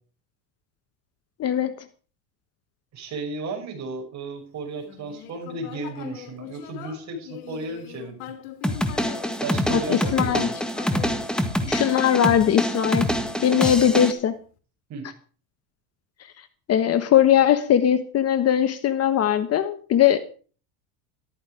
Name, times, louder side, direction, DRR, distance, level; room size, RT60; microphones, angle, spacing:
voice 1, 1.4-1.7 9.7-10.5 11.7-13.1 13.4-14.4 16.7-20.2, left 10 dB, 35° left, 1.2 m, -20 dB
voice 2, 2.9-8.3 9.4-10.5 11.6-11.7 14.9-15.1, right 3 dB, 40° right, 6.7 m, -34 dB
Human voice, 4.8-12.2 12.8-14.2, left 12 dB, 75° left, 2.9 m, -42 dB
sound 1, 8.6-14.1, equal, ahead, 1.8 m, -26 dB
14.0 x 13.5 x 5.0 m
supercardioid pair, 130°, 44 cm